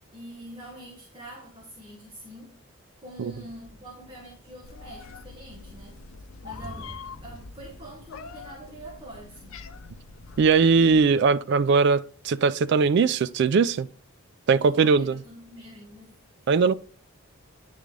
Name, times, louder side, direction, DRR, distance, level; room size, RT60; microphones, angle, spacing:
voice 1, 0.1-2.6 3.0-6.0 6.4-6.9 7.2-9.6 14.6-16.2, right 1 dB, 25° right, 1.3 m, -45 dB
sound 1, 3.3-9.4, right 1 dB, 10° left, 3.6 m, -49 dB
Meow, 4.6-11.0, left 4 dB, 75° left, 0.6 m, -44 dB
voice 2, 10.4-13.9 14.5-15.2 16.5-16.7, right 5 dB, 55° right, 0.3 m, -20 dB
9.3 x 3.8 x 3.2 m
head